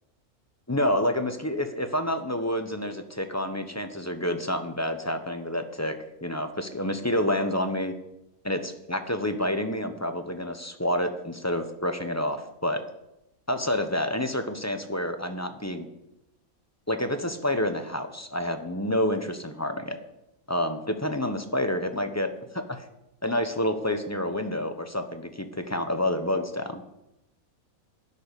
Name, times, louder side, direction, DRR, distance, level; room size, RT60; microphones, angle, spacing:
voice 1, 0.7-6.0 6.2-7.9 8.4-12.8 13.5-15.9 16.9-20.0 20.5-22.8 23.2-26.8, left 1 dB, 15° left, 7 dB, 0.9 m, -28 dB
12.5 x 7.1 x 10.0 m, 0.87 s
omnidirectional pair, 1.5 m